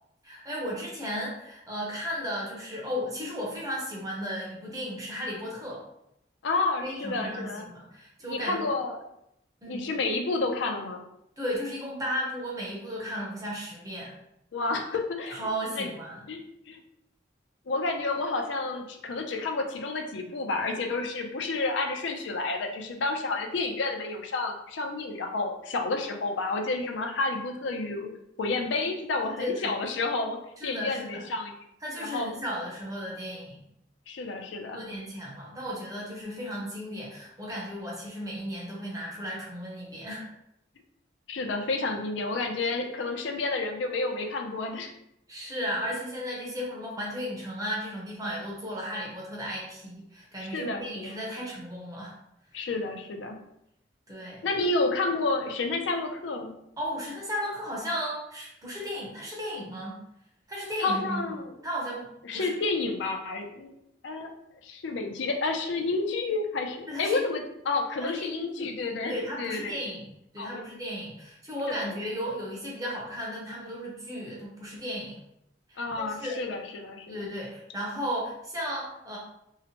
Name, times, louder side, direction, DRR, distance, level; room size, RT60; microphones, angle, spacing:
voice 1, 0.2-5.8 6.8-8.7 9.6-9.8 11.4-14.1 15.3-16.3 29.2-29.7 30.6-31.2 31.8-33.6 34.7-40.3 45.3-52.2 54.1-54.4 56.8-60.0 60.5-61.2 61.6-62.6 66.9-67.5 68.0-68.7 69.1-75.2 75.7-76.4 77.1-79.2, equal, 20° right, -4 dB, 0.6 m, -35 dB
voice 2, 6.4-7.7 8.3-9.0 9.7-11.0 14.5-15.5 15.7-15.9 16.3-16.4 16.7-16.8 17.7-28.1 28.4-30.4 30.6-31.5 32.0-32.3 34.1-34.8 41.3-44.9 50.5-51.2 52.5-53.4 54.4-56.5 60.8-61.5 62.2-63.7 64.0-64.3 64.6-69.8 70.4-70.7 71.7-71.8 75.8-77.2, left 3 dB, 75° left, 3 dB, 0.4 m, -30 dB
2.8 x 2.1 x 2.8 m, 0.81 s
head